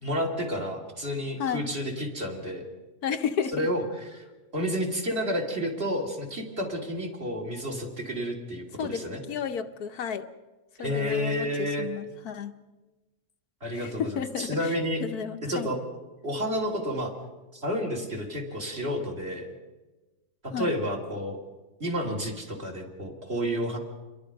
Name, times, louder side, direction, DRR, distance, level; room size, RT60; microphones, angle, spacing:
voice 1, 0.0-2.6 3.5-3.8 4.1-4.2 4.5-9.2 10.8-11.9 13.6-15.0 15.4-15.8 16.2-17.1 17.5-19.5 20.4-21.4 21.8-23.8, equal, 40° right, 3 dB, 3.7 m, -30 dB
voice 2, 3.0-3.7 8.8-10.3 10.8-12.5 13.7-15.7 20.5-20.7, left 7 dB, 70° left, 7 dB, 1.4 m, -33 dB
28.5 x 22.5 x 5.2 m, 1.2 s
omnidirectional pair, 1.7 m